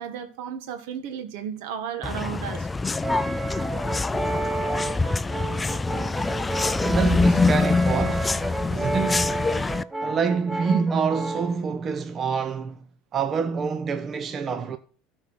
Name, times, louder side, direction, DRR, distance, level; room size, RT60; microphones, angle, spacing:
voice 1, 0.0-2.7, right 8 dB, 70° right, 1.3 m, -34 dB
sound 1, 2.0-9.8, left 3 dB, 15° left, 0.3 m, -25 dB
Brass instrument, 3.0-11.6, right 2 dB, 10° right, 0.8 m, -31 dB
voice 2, 6.8-9.4 10.0-12.8 13.1-14.8, right 5 dB, 35° right, 0.6 m, -26 dB
12.5 x 4.4 x 6.2 m
hypercardioid pair, 90°, 0 cm